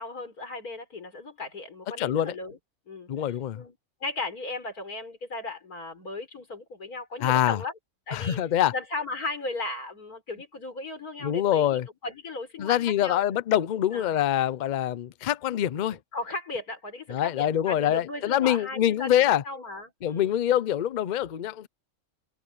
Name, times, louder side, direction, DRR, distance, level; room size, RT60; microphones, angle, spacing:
voice 1, 0.0-2.6 2.9-7.7 8.1-8.4 8.7-13.2 13.9-14.2 15.9-20.3, left 2 dB, 85° left, 4.9 m, -36 dB
voice 2, 2.0-2.3 3.1-3.6 7.2-7.6 8.1-8.7 11.2-11.9 12.6-16.0 17.1-19.4 20.0-21.7, left 11 dB, 60° left, 0.5 m, -25 dB
omnidirectional pair, 1.5 m